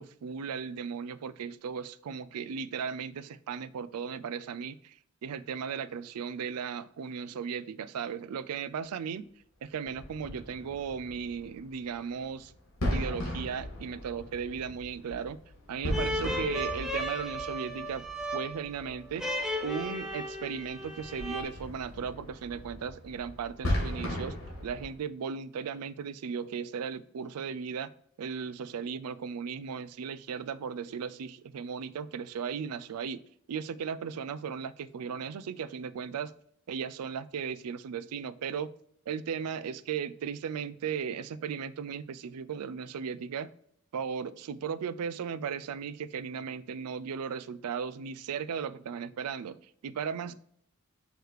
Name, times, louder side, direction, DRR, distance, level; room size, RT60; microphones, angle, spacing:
voice 1, 0.0-9.3 9.6-12.5 12.9-15.4 15.7-18.1 18.3-19.3 19.6-24.4 24.6-27.9 28.2-33.2 33.5-36.3 36.7-38.7 39.1-43.5 43.9-50.3, right 6 dB, 85° right, 0.4 m, -36 dB
sound 1, 9.8-24.9, left 1 dB, 65° left, 2.2 m, -38 dB
sound 2, 15.9-21.4, equal, ahead, 0.6 m, -35 dB
6.5 x 3.2 x 4.7 m
head